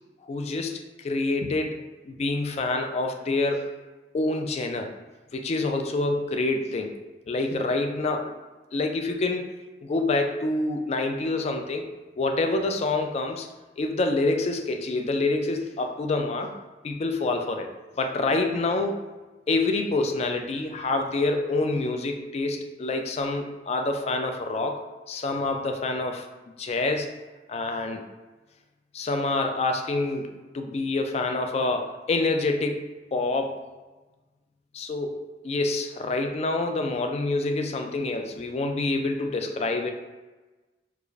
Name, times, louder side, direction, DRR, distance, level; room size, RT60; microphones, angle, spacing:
voice 1, 0.3-3.7 4.1-4.9 5.3-6.9 7.3-8.4 8.7-9.5 9.8-11.8 12.2-13.5 13.8-16.5 16.8-17.7 18.0-19.0 19.5-24.8 25.1-26.3 26.6-27.1 27.5-28.0 28.9-32.8 33.1-33.6 34.7-39.9, left 2 dB, 35° left, 4 dB, 0.3 m, -27 dB
4.7 x 2.4 x 2.4 m, 1.2 s
head